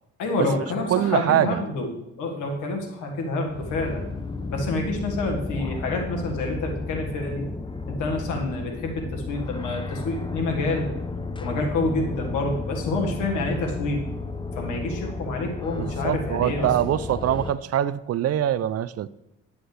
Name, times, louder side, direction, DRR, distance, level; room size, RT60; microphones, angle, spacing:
voice 1, 0.2-4.1 4.5-7.5 7.9-10.9 11.4-14.0 14.6-16.7, left 2 dB, 85° left, 2 dB, 1.8 m, -28 dB
voice 2, 0.9-1.6 15.7-19.1, right 11 dB, 55° right, 17 dB, 0.5 m, -23 dB
sound 1, 3.5-17.5, left 3 dB, 15° left, 0.8 m, -33 dB
10.0 x 9.6 x 3.3 m, 0.88 s
cardioid pair, 90°, 30 cm